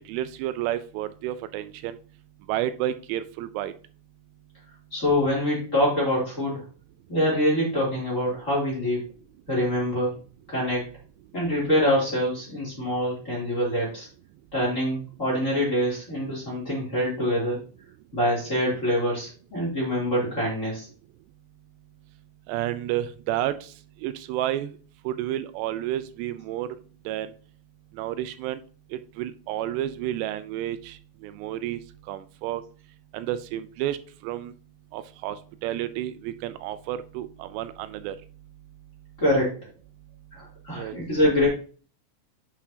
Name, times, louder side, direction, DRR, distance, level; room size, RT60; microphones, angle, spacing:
voice 1, 0.1-2.0 2.5-3.7 22.5-23.7 24.0-24.7 25.1-26.7 27.1-27.3 28.0-28.6 29.2-31.0 31.2-31.8 32.1-32.6 33.1-34.0 34.2-34.5 34.9-35.4 35.6-38.2 40.7-41.0, right 13 dB, 85° right, 12 dB, 2.7 m, -30 dB
voice 2, 4.9-6.7 7.1-9.0 9.5-10.1 10.5-10.9 11.3-14.1 14.5-17.6 18.1-20.9 39.2-39.6 40.3-41.5, equal, 20° left, -5 dB, 2.7 m, -25 dB
8.3 x 5.9 x 2.8 m, 0.40 s
omnidirectional pair, 5.0 m